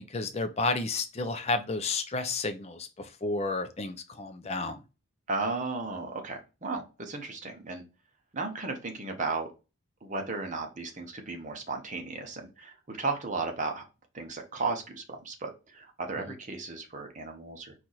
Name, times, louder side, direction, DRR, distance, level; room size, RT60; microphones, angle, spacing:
voice 1, 0.0-2.9 3.2-4.8, left 3 dB, 30° left, 8 dB, 0.5 m, -31 dB
voice 2, 5.3-7.8 8.3-9.5 10.0-13.8 14.1-17.7, right 3 dB, 35° right, 4 dB, 0.8 m, -35 dB
4.5 x 2.5 x 4.0 m, 0.30 s
head